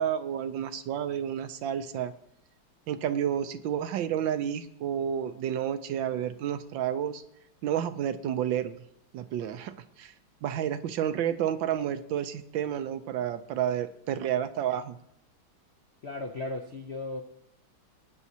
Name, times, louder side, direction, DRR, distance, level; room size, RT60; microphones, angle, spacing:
voice 1, 0.0-2.1 2.9-7.2 7.6-8.8 9.1-10.1 10.4-15.0, right 9 dB, 75° right, 11 dB, 1.3 m, -30 dB
voice 2, 16.0-17.2, left 2 dB, 65° left, 4 dB, 0.6 m, -36 dB
19.5 x 9.3 x 2.8 m, 0.74 s
omnidirectional pair, 2.2 m